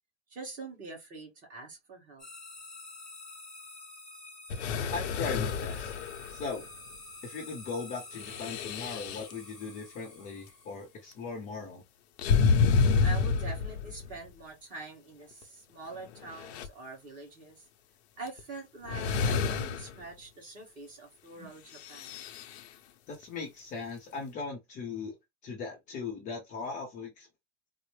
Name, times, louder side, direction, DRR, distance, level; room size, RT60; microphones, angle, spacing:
voice 1, 0.3-2.3 12.5-17.6 18.2-22.2, right 2 dB, 25° right, 1.3 m, -45 dB
sound 1, 2.2-11.1, left 2 dB, 5° left, 1.1 m, -48 dB
sound 2, 4.5-6.7 8.1-9.3 12.2-14.2 15.4-15.5 16.1-16.7 18.3-18.4 18.9-20.0 21.7-22.6, left 5 dB, 65° left, 0.7 m, -29 dB
voice 2, 4.9-5.9 6.3-6.7 7.2-11.8 23.1-25.2 25.4-27.3, left 4 dB, 20° left, 0.6 m, -38 dB
4.1 x 2.0 x 3.1 m
supercardioid pair, 160°, 35 cm